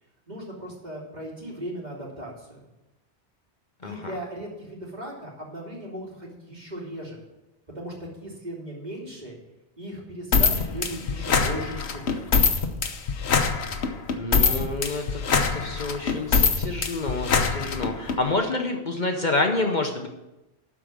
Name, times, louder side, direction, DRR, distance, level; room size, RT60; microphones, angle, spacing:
voice 1, 0.3-2.7 3.8-7.2 7.7-9.4 9.8-12.2, right 1 dB, 40° right, -3 dB, 3.0 m, -37 dB
sound 1, 10.3-18.2, left 5 dB, 70° left, 1.2 m, -23 dB
voice 2, 14.2-20.1, left 2 dB, 45° left, 3 dB, 1.0 m, -28 dB
12.5 x 4.9 x 7.6 m, 0.98 s
omnidirectional pair, 1.1 m